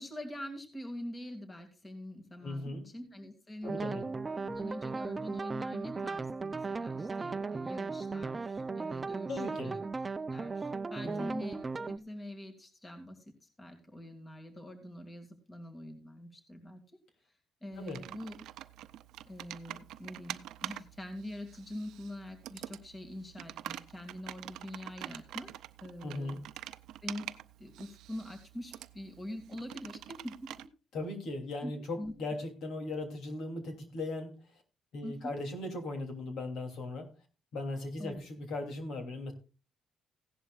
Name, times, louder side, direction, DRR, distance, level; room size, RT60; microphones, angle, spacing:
voice 1, 0.0-4.1 4.4-9.8 10.3-13.2 13.6-16.8 17.6-18.4 19.3-25.5 25.8-26.4 27.0-27.3 27.6-30.7 31.6-32.1 35.0-35.4 38.0-38.2, left 1 dB, 25° left, 6 dB, 2.3 m, -44 dB
voice 2, 2.4-2.8 3.6-4.0 9.3-9.7 11.0-11.3 17.8-18.0 26.0-26.4 30.9-34.3 34.9-37.1 37.5-39.3, left 2 dB, 75° left, 4 dB, 3.0 m, -38 dB
sound 1, 3.6-12.0, right 4 dB, 30° right, 0.5 m, -37 dB
Computer keyboard, 17.7-30.7, right 13 dB, 85° right, 0.5 m, -46 dB
16.0 x 11.0 x 2.4 m, 0.32 s
cardioid pair, 90°, 0 cm